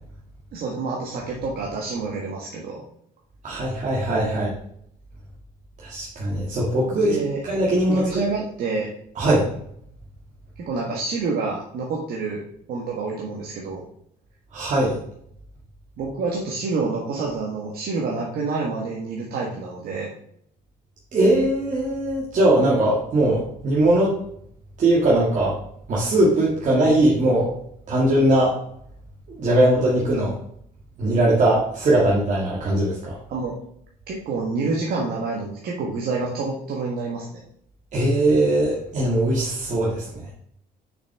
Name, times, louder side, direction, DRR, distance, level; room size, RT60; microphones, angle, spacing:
voice 1, 0.5-2.8 6.8-7.4 7.9-8.9 10.6-12.4 12.7-13.8 16.0-20.1 33.3-33.5 34.1-37.4, right 4 dB, 65° right, -2 dB, 1.5 m, -28 dB
voice 2, 3.4-4.5 5.8-7.2 7.4-8.2 9.2-9.5 14.5-14.9 21.1-24.2 24.8-25.6 25.9-27.5 27.9-28.6 29.4-30.3 31.0-33.1 37.9-40.0, right 1 dB, 45° right, -5 dB, 2.0 m, -20 dB
6.3 x 5.9 x 3.5 m, 0.69 s
cardioid pair, 110°, 17 cm